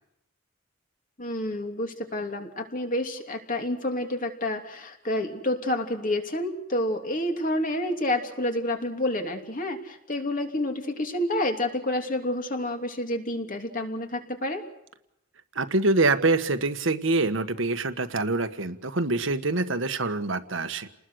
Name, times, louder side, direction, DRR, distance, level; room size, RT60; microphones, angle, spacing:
voice 1, 1.2-14.6, left 1 dB, 45° left, 4 dB, 3.0 m, -29 dB
voice 2, 15.5-20.9, right 3 dB, 75° right, 10 dB, 1.6 m, -25 dB
29.5 x 20.0 x 6.5 m, 0.84 s
head